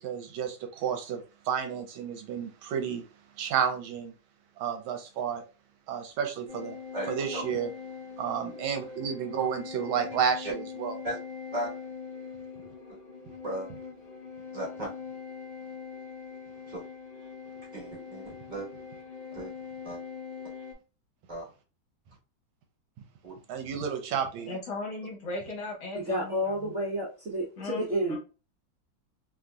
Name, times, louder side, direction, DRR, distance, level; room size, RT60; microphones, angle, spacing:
voice 1, 0.0-3.0 3.4-4.1 4.6-5.4 5.9-6.8 7.1-7.7 8.2-11.0 23.5-24.6, right 7 dB, 85° right, 1.4 m, -31 dB
sound 1, 6.5-20.7, left 6 dB, 45° left, 0.7 m, -42 dB
voice 2, 6.9-7.4 10.4-10.5 11.0-11.2 11.5-11.7 13.4-13.7 14.5-14.9 16.7-16.8 17.7-18.7 19.3-19.5 19.8-20.0 21.3-21.5 23.2-23.3, right 1 dB, 30° right, 1.0 m, -35 dB
voice 3, 24.5-26.7 27.6-28.2, left 2 dB, 65° left, 1.3 m, -37 dB
voice 4, 25.9-28.2, equal, 55° right, 0.8 m, -30 dB
3.2 x 2.6 x 2.3 m
omnidirectional pair, 2.2 m